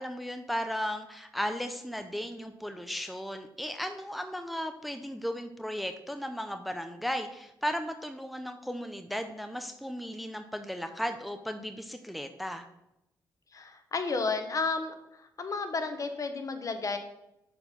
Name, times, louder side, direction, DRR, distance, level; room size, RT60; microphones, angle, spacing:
voice 1, 0.0-12.6, equal, ahead, 7 dB, 0.6 m, -35 dB
voice 2, 13.5-14.9 15.4-17.0, left 4 dB, 45° left, 7 dB, 1.0 m, -32 dB
6.3 x 4.5 x 5.5 m, 0.86 s
cardioid pair, 70°, 8 cm